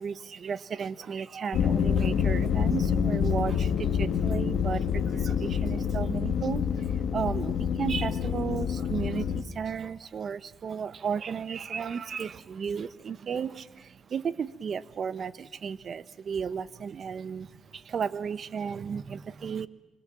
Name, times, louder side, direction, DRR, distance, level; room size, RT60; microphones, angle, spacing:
voice 1, 0.0-19.7, right 6 dB, 50° right, 15 dB, 1.1 m, -34 dB
sound 1, 1.5-9.4, left 7 dB, 70° left, 1.9 m, -27 dB
26.5 x 26.0 x 7.7 m, 1.1 s
cardioid pair, 90°, 0 cm